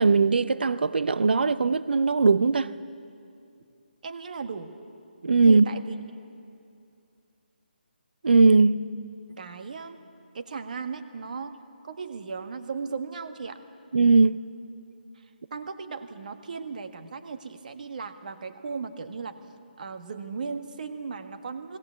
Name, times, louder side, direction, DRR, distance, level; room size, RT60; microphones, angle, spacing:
voice 1, 0.0-2.7 5.2-5.7 8.2-8.8 13.9-14.4, right 4 dB, 70° right, 0.6 m, -19 dB
voice 2, 4.0-4.7 5.5-5.9 9.4-10.0 10.3-13.6 15.2-19.4 19.8-21.8, right 5 dB, 50° right, 1.6 m, -36 dB
21.0 x 18.0 x 8.1 m
hypercardioid pair, 160°, 6 cm